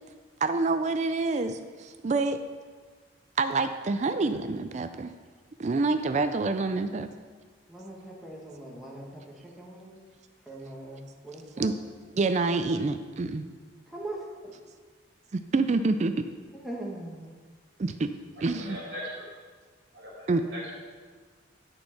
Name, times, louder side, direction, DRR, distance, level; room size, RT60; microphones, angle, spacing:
voice 1, 0.4-2.4 3.4-5.1 5.6-7.1 11.6-11.7 12.1-13.5 15.3-16.3 17.8-18.1 18.4-18.8 20.3-20.4, right 3 dB, 35° right, 9 dB, 0.4 m, -27 dB
voice 2, 7.7-10.0 10.4-11.7 13.9-14.5 16.5-17.3, right 1 dB, ahead, -4 dB, 1.3 m, -41 dB
voice 3, 18.4-19.3 19.9-20.7, equal, 65° right, -4 dB, 3.2 m, -40 dB
11.5 x 4.4 x 5.9 m, 1.5 s
head